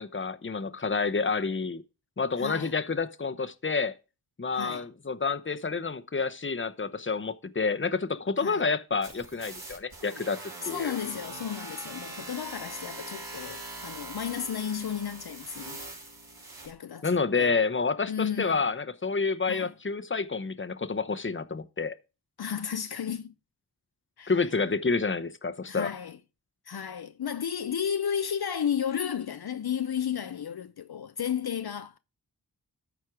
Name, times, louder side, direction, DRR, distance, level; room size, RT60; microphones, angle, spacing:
voice 1, 0.0-1.8 2.2-3.9 4.4-10.4 10.6-10.9 17.0-21.9 24.3-25.9, left 4 dB, 30° left, 0.9 m, -29 dB
voice 2, 2.4-2.7 4.6-4.9 8.4-8.7 10.6-15.8 16.6-17.1 17.4-17.5 18.1-18.7 19.5-19.7 22.4-23.3 24.2-24.3 25.7-26.2 26.7-32.0, left 8 dB, 65° left, 0.7 m, -33 dB
sound 1, 9.0-16.7, right 2 dB, 60° right, 3.6 m, -42 dB
13.5 x 4.6 x 4.7 m
wide cardioid pair, 55°, 41 cm